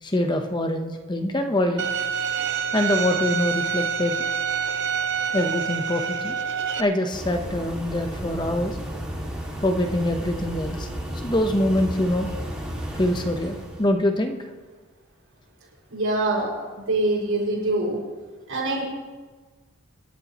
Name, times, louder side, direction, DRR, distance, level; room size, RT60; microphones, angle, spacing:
voice 1, 0.0-1.8 2.7-4.3 5.3-6.4 6.8-8.8 9.6-10.9 11.2-12.3 13.0-14.4, left 1 dB, 20° left, 5 dB, 0.9 m, -24 dB
Bowed string instrument, 1.8-6.8, right 7 dB, 55° right, 0.7 m, -27 dB
sound 1, 7.1-13.9, equal, 5° right, 2.3 m, -33 dB
voice 2, 15.9-16.5 16.7-18.0 18.5-18.8, right 2 dB, 80° right, -3 dB, 5.7 m, -24 dB
27.5 x 11.5 x 3.0 m, 1.4 s
head